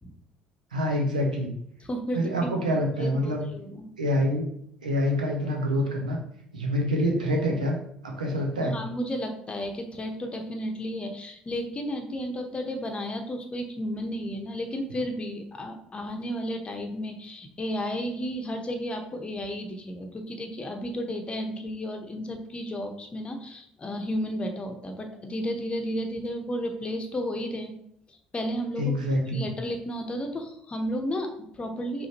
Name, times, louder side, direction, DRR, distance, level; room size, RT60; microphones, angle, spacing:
voice 1, 0.7-1.5 2.1-3.5 4.0-4.5 4.8-6.2 6.5-7.8 8.0-8.7 28.8-29.5, equal, 85° right, 1 dB, 0.8 m, -26 dB
voice 2, 1.8-2.3 3.0-3.9 8.6-27.8 28.3-28.9 29.3-32.1, equal, 25° left, 4 dB, 0.9 m, -33 dB
5.0 x 3.4 x 2.9 m, 0.70 s
figure-of-eight pair, 55°, 4 cm